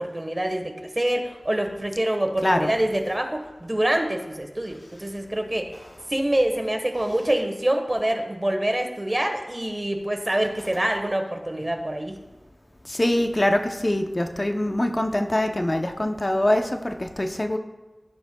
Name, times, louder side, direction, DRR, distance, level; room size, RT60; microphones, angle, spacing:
voice 1, 0.0-5.7 6.1-12.2, right 1 dB, 30° right, 4 dB, 1.2 m, -26 dB
voice 2, 12.8-17.6, left 1 dB, 35° left, 5 dB, 0.6 m, -23 dB
15.0 x 6.9 x 2.3 m, 1.1 s
wide cardioid pair, 60°, 0 cm